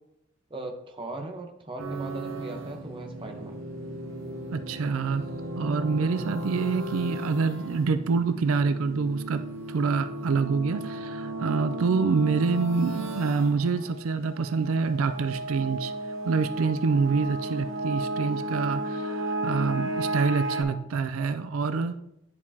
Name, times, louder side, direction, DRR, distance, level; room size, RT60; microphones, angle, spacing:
voice 1, 0.5-3.6, right 2 dB, 25° right, 2 dB, 0.9 m, -39 dB
sound 1, 1.8-20.6, right 1 dB, 65° right, 0.8 m, -34 dB
voice 2, 4.5-5.2 5.6-9.4 9.7-15.9 16.2-22.0, right 4 dB, 80° right, 11 dB, 0.4 m, -26 dB
10.0 x 4.8 x 2.8 m, 0.82 s
head